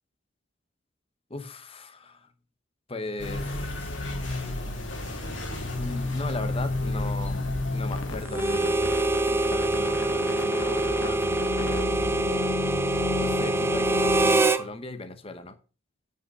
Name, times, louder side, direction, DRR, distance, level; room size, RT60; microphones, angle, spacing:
voice 1, 1.3-2.3 2.9-4.0 5.8-8.8 9.3-11.3 11.6-12.5 13.2-15.6, left 2 dB, 25° left, 9 dB, 0.9 m, -38 dB
sound 1, 3.2-8.3, left 2 dB, 60° left, 2.6 m, -31 dB
sound 2, 3.6-14.4, left 3 dB, 75° left, 1.4 m, -35 dB
Harmonica, 8.3-14.6, right 2 dB, 10° right, 0.4 m, -25 dB
8.8 x 5.5 x 6.1 m, 0.35 s
head